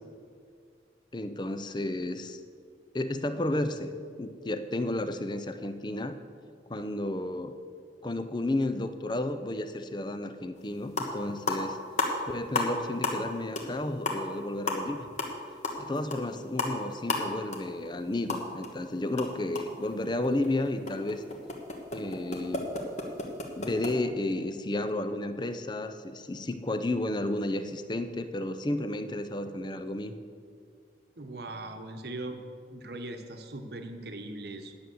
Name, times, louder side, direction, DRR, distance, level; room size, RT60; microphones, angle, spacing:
voice 1, 1.1-2.4 2.9-3.9 4.2-6.2 6.7-7.5 8.0-11.8 12.3-15.1 15.8-21.2 21.9-22.7 23.6-30.1, left 1 dB, 25° left, 9 dB, 0.5 m, -32 dB
sound 1, 10.6-10.7 10.9-11.2 11.5-12.7 13.0-13.3 13.6-13.7 14.0-18.7 19.0-23.9, left 3 dB, 40° left, 1.4 m, -33 dB
voice 2, 31.2-32.4 32.7-34.7, right 2 dB, 55° right, 6 dB, 1.0 m, -40 dB
10.0 x 6.8 x 7.8 m, 2.2 s
head